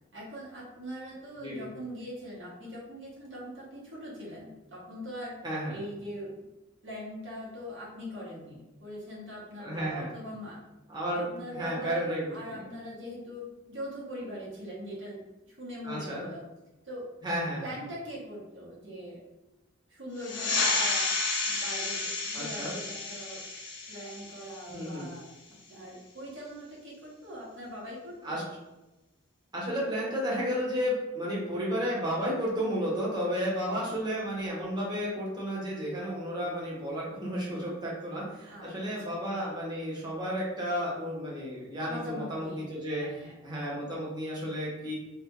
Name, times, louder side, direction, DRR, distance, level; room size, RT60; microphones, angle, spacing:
voice 1, 0.1-5.3 5.7-6.3 6.8-10.6 11.1-16.4 16.8-17.1 17.6-19.2 19.9-21.0 21.4-23.4 23.9-25.2 25.7-28.5 33.6-33.9 38.5-38.7 39.1-39.2 41.9-42.7 43.0-43.3, equal, 75° right, -5 dB, 0.9 m, -42 dB
voice 2, 5.4-5.8 9.6-10.1 10.9-12.6 15.8-16.2 17.2-17.7 22.3-22.7 24.7-25.1 28.2-28.4 29.5-43.0 43.4-44.9, equal, 20° right, -6 dB, 0.7 m, -32 dB
sound 1, 20.2-25.3, left 3 dB, 70° left, 0.5 m, -31 dB
2.3 x 2.1 x 2.9 m, 1.0 s
head